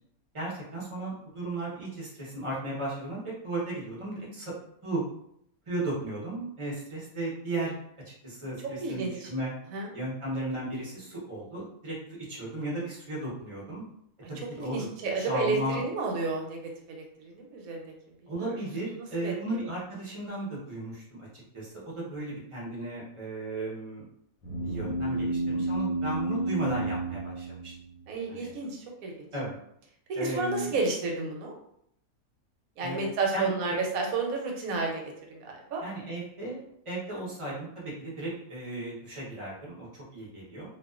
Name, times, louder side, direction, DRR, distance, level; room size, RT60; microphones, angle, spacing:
voice 1, 0.3-4.5 4.8-5.0 5.7-7.8 8.2-9.5 9.9-13.8 14.3-14.9 15.1-15.8 18.3-24.0 24.6-27.7 28.3-28.5 29.3-29.5 30.1-30.8 32.8-33.8 35.8-40.7, right 1 dB, 35° right, -5 dB, 0.5 m, -35 dB
voice 2, 8.8-9.3 9.7-9.9 14.6-16.6 16.9-17.9 18.3-18.6 18.9-19.3 28.1-29.3 30.1-31.5 32.8-35.0 35.3-35.8, right 3 dB, 75° right, 0 dB, 1.0 m, -31 dB
sound 1, 24.4-28.1, right 2 dB, 75° left, 1.0 m, -31 dB
2.4 x 2.3 x 2.3 m, 0.72 s
omnidirectional pair, 1.6 m